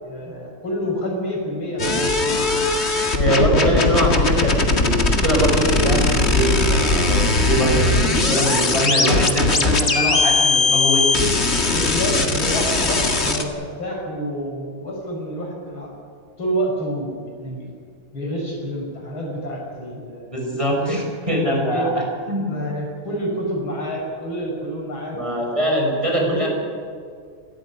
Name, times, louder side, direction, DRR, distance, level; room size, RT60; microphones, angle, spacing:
voice 1, 0.0-2.4 3.2-4.2 8.0-8.2 11.7-15.9 16.4-17.7 18.1-21.0 21.5-21.9 22.2-25.5 26.2-26.5, equal, 75° left, 0 dB, 6.7 m, -28 dB
sound 1, 1.8-13.4, left 3 dB, 30° left, 2.0 m, -19 dB
voice 2, 3.1-11.0 20.3-22.6 25.1-26.5, equal, 15° right, -1 dB, 6.0 m, -22 dB
28.5 x 14.0 x 9.7 m, 2.1 s
omnidirectional pair, 2.3 m